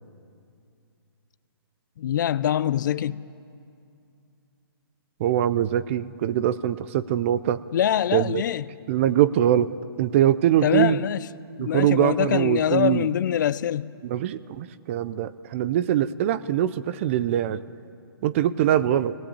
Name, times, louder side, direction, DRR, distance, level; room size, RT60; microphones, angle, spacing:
voice 1, 2.0-3.2 7.7-8.6 10.6-11.2 11.6-13.9, left 10 dB, 50° left, 0.5 m, -24 dB
voice 2, 5.2-7.6 8.1-8.4 8.9-9.7 10.0-11.0 11.6-13.1 14.0-17.6 18.2-19.2, right 11 dB, 30° right, 0.5 m, -23 dB
23.5 x 18.0 x 8.6 m
hypercardioid pair, 155°, 13 cm